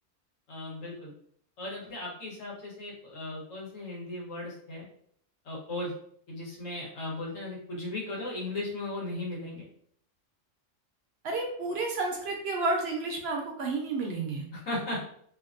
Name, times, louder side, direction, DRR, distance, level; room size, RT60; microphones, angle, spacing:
voice 1, 0.5-1.1 1.6-4.9 5.4-5.9 6.3-9.7 14.5-15.0, left 2 dB, 85° left, -4 dB, 1.4 m, -36 dB
voice 2, 11.2-14.5, right 3 dB, 65° right, 1 dB, 0.7 m, -31 dB
2.7 x 2.5 x 2.4 m, 0.64 s
omnidirectional pair, 1.3 m